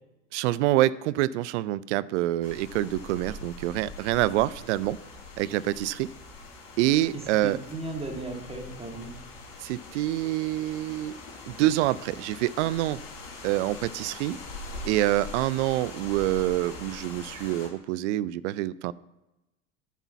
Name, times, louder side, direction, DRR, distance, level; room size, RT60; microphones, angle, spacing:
voice 1, 0.3-5.0 5.4-6.1 6.8-7.6 9.6-11.2 11.5-13.0 13.4-14.4 14.8-18.9, right 15 dB, 65° right, 20 dB, 0.5 m, -26 dB
sound 1, 2.4-17.7, left 3 dB, 50° left, 3.6 m, -43 dB
voice 2, 7.1-9.2, right 2 dB, 15° right, 1 dB, 1.9 m, -36 dB
8.3 x 6.0 x 7.0 m, 0.97 s
hypercardioid pair, 80°, 38 cm